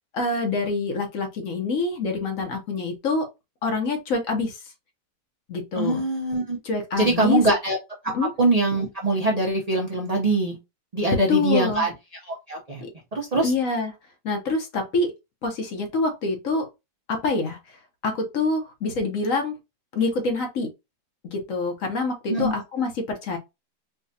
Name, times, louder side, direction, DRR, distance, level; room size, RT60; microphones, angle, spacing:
voice 1, 0.1-3.3 3.6-4.6 5.5-6.0 6.6-7.4 8.1-8.3 11.3-11.9 12.8-12.9 13.4-13.9 14.2-15.1 15.4-16.7 17.1-17.6 18.0-19.5 19.9-20.7 21.2-23.4, left 3 dB, 55° left, 1.0 m, -26 dB
voice 2, 5.7-6.6 7.0-7.8 8.0-8.1 8.4-10.6 10.9-11.9 12.3-12.8 13.1-13.5 22.3-22.5, right 2 dB, 75° right, 0.3 m, -23 dB
4.7 x 2.2 x 2.6 m
omnidirectional pair, 1.9 m